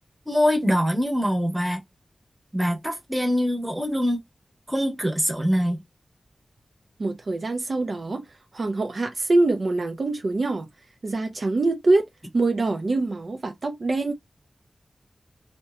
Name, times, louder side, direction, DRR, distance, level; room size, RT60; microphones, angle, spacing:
voice 1, 0.3-1.8 2.5-4.2 4.7-5.8, equal, 10° right, 1.0 m, -23 dB
voice 2, 7.0-8.2 8.5-10.7 11.0-12.0 12.3-14.1, right 2 dB, 60° right, 0.5 m, -24 dB
2.8 x 2.2 x 2.3 m
wide cardioid pair, 60°, 0 cm